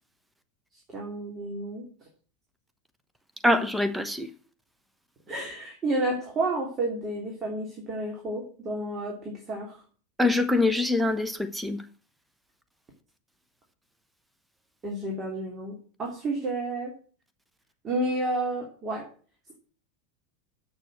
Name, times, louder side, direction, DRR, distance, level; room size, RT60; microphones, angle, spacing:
voice 1, 0.9-1.9 5.3-9.8 14.8-16.9 17.8-19.0, right 2 dB, 25° right, 3.0 m, -31 dB
voice 2, 3.4-4.3 10.2-11.8, left 2 dB, 5° right, 1.1 m, -24 dB
7.8 x 6.9 x 7.9 m
figure-of-eight pair, 85°, 0 cm